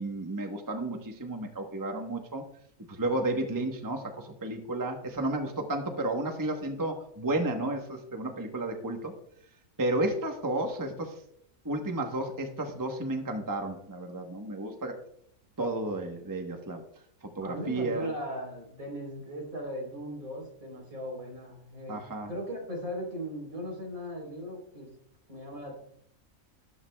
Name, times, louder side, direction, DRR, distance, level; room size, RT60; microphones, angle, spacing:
voice 1, 0.0-2.4 3.0-9.1 9.8-11.1 11.6-15.0 15.6-16.8 17.4-18.1 21.9-22.3, right 2 dB, 15° right, 4 dB, 1.0 m, -32 dB
voice 2, 17.4-22.0 22.3-24.9 25.3-25.7, equal, 70° right, -1 dB, 4.3 m, -38 dB
12.5 x 12.5 x 2.3 m, 0.71 s
omnidirectional pair, 1.5 m